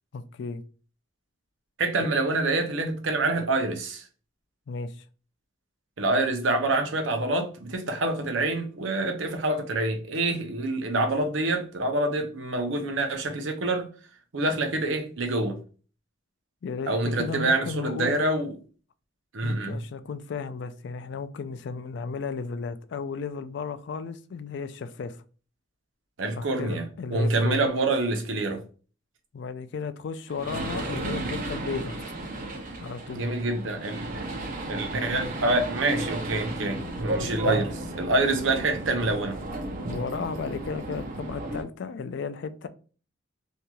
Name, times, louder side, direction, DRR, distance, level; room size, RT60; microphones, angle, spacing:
voice 1, 0.1-0.6 4.7-5.0 16.6-18.2 19.4-25.2 26.4-27.7 29.3-32.0 32.8-33.2 37.2-37.6 39.9-42.7, left 5 dB, 65° left, 0.3 m, -34 dB
voice 2, 1.8-4.1 6.0-13.9 14.3-15.6 16.9-18.5 19.3-19.8 26.2-28.6 33.1-34.2 34.7-37.7 38.0-39.4, right 2 dB, 80° right, 0.7 m, -26 dB
sound 1, 30.3-41.6, right 1 dB, 45° right, 0.6 m, -34 dB
3.0 x 2.7 x 2.3 m
head